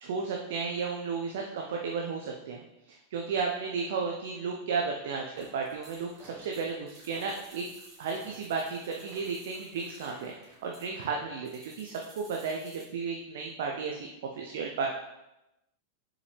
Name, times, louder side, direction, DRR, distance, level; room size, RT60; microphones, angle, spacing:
voice 1, 0.0-2.6 2.9-7.6 8.0-14.1 14.4-14.9, right 5 dB, 55° right, 1 dB, 0.6 m, -33 dB
sound 1, 5.4-12.9, right 1 dB, 25° right, 2.1 m, -53 dB
6.8 x 5.0 x 3.3 m, 0.93 s
figure-of-eight pair, 90°, 0 cm